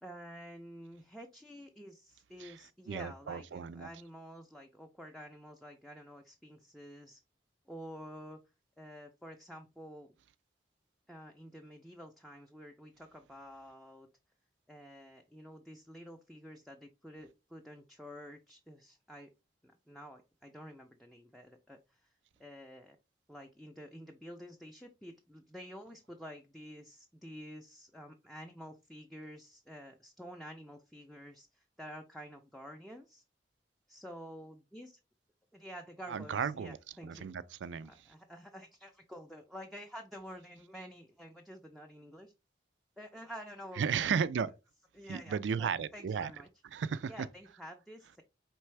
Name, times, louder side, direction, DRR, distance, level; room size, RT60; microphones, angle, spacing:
voice 1, 0.0-7.2 7.7-8.4 8.8-10.2 11.1-14.1 14.7-19.3 19.6-22.1 22.4-23.0 23.3-33.2 33.9-35.0 35.5-37.3 37.9-42.3 43.0-44.1 44.9-46.5 47.0-48.2, equal, ahead, 0.4 m, -49 dB
voice 2, 2.9-3.9 36.1-36.8 37.0-37.9 43.8-44.5 45.1-46.3 46.7-47.1, right 6 dB, 85° right, 0.4 m, -34 dB
4.5 x 3.3 x 3.2 m
head